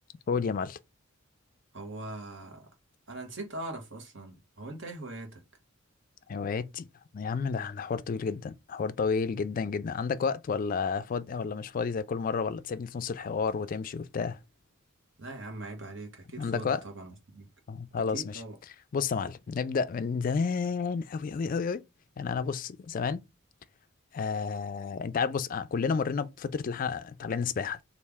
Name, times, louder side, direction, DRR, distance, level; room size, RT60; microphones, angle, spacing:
voice 1, 0.3-0.8 6.3-6.9 7.1-14.4 16.4-16.8 17.7-18.4 18.9-21.8 22.2-23.3 24.1-27.8, left 5 dB, 40° left, 0.3 m, -31 dB
voice 2, 1.7-2.6 3.1-5.4 15.2-17.5 17.9-18.5, right 2 dB, 60° right, 1.2 m, -41 dB
3.2 x 2.5 x 3.4 m
head